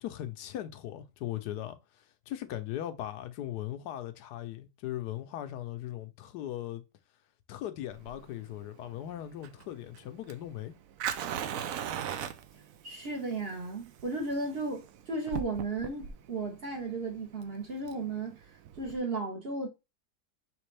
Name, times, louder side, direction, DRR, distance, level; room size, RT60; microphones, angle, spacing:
voice 1, 0.0-6.8 7.5-10.7, left 12 dB, 80° left, 1.2 m, -39 dB
Fire, 7.9-19.0, right 9 dB, 70° right, 0.9 m, -40 dB
voice 2, 12.8-18.4 18.8-19.7, right 3 dB, 40° right, 1.1 m, -35 dB
5.2 x 3.2 x 3.2 m
omnidirectional pair, 1.7 m